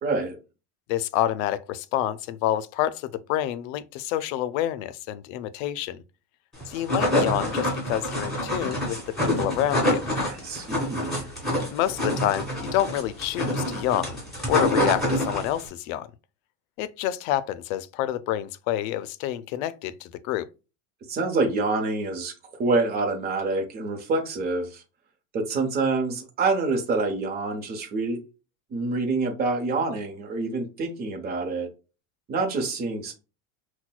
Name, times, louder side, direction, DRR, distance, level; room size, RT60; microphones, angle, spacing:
voice 1, 0.0-0.4 10.2-11.3 21.1-22.3 22.6-24.8 25.3-28.2 28.7-31.7 32.3-33.1, right 3 dB, 25° right, 0.8 m, -26 dB
voice 2, 0.9-6.0 6.7-10.1 11.7-14.2 14.5-16.1 16.8-20.5, left 12 dB, 90° left, 0.5 m, -28 dB
sound 1, 6.6-15.7, left 1 dB, ahead, 1.8 m, -26 dB
5.8 x 2.2 x 2.2 m
cardioid pair, 160°, 39 cm